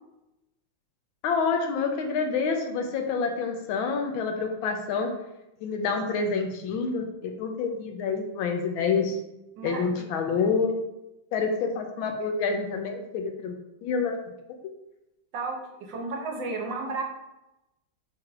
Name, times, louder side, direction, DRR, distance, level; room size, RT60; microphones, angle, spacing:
voice 1, 1.2-5.1 5.6-9.2 9.6-10.7 11.3-13.5 13.8-14.2, left 5 dB, 85° left, 3 dB, 1.4 m, -27 dB
voice 2, 9.6-10.1 15.3-17.0, right 3 dB, 70° right, 1 dB, 1.4 m, -33 dB
4.6 x 2.5 x 4.6 m, 0.92 s
omnidirectional pair, 2.2 m